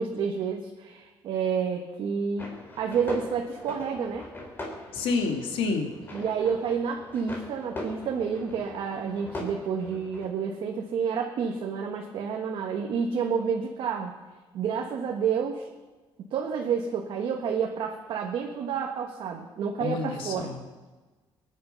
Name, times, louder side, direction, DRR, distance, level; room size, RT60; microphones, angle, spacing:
voice 1, 0.0-4.3 6.1-14.2 14.5-15.7 16.3-20.5, right 6 dB, 65° right, 1 dB, 1.6 m, -29 dB
sound 1, 2.4-10.3, left 1 dB, 25° left, 3.4 m, -41 dB
voice 2, 4.9-5.9 19.8-20.6, left 4 dB, 80° left, 3 dB, 2.7 m, -28 dB
23.0 x 10.0 x 5.5 m, 1.3 s
cardioid pair, 150°, 9 cm